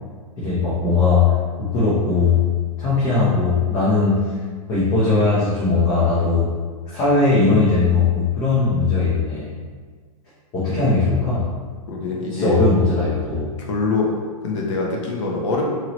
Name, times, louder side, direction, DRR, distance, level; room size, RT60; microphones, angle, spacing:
voice 1, 0.4-2.4 2.8-4.3 4.7-6.5 6.9-9.5 10.5-11.5 12.3-13.5, left 4 dB, 20° left, -9 dB, 0.7 m, -19 dB
voice 2, 11.9-12.7 13.6-14.1 14.4-15.6, left 3 dB, 55° left, -1 dB, 1.0 m, -24 dB
4.5 x 3.0 x 3.0 m, 1.5 s
hypercardioid pair, 160°, 19 cm